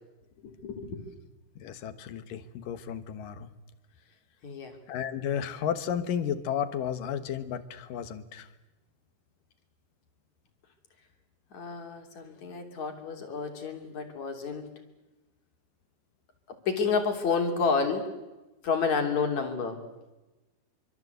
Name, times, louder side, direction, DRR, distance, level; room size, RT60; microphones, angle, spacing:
voice 1, 0.4-1.0 4.4-4.8 11.5-14.7 16.5-18.1 18.6-19.8, left 5 dB, 50° left, 4 dB, 4.2 m, -30 dB
voice 2, 1.6-3.5 4.9-8.5, left 8 dB, 70° left, 11 dB, 2.9 m, -33 dB
26.5 x 25.0 x 8.1 m, 1.1 s
omnidirectional pair, 4.2 m